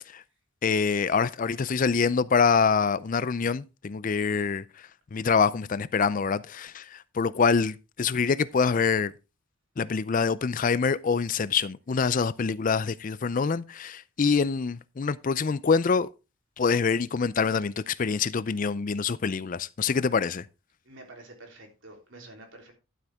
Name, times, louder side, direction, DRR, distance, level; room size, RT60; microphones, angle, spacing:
voice 1, 0.6-4.6 5.1-9.1 9.8-16.1 16.6-20.4, left 5 dB, 40° left, 0.4 m, -25 dB
voice 2, 20.9-22.7, right 2 dB, 65° right, 3.4 m, -48 dB
12.0 x 7.8 x 3.5 m
head